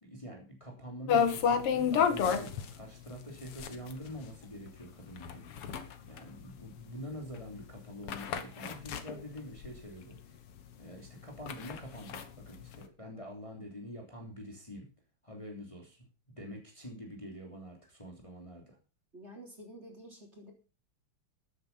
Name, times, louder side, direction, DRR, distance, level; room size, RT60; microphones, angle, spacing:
voice 1, 0.0-10.4 10.8-14.9 15.2-18.8, equal, 15° left, 0 dB, 3.3 m, -46 dB
sound 1, 1.1-10.2 10.6-10.7 11.1-12.8, left 7 dB, 90° left, 2.3 m, -32 dB
voice 2, 19.1-20.5, right 1 dB, 30° right, 1 dB, 3.9 m, -49 dB
13.5 x 9.5 x 5.7 m, 0.34 s
omnidirectional pair, 2.4 m